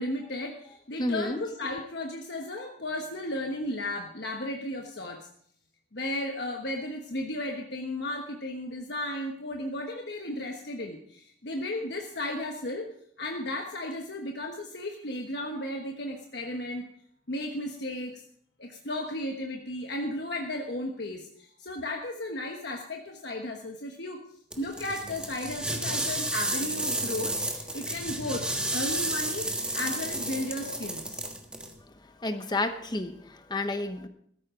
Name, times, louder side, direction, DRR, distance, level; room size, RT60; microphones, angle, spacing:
voice 1, 0.0-5.3 5.9-12.9 13.2-16.8 17.3-18.2 18.6-24.2 24.6-31.3, left 1 dB, 60° left, 2 dB, 1.2 m, -34 dB
voice 2, 1.0-1.4 32.2-34.1, left 2 dB, 20° left, 8 dB, 1.0 m, -30 dB
sound 1, 24.5-31.7, right 1 dB, 5° right, 1.5 m, -32 dB
15.5 x 14.0 x 3.8 m, 0.65 s
head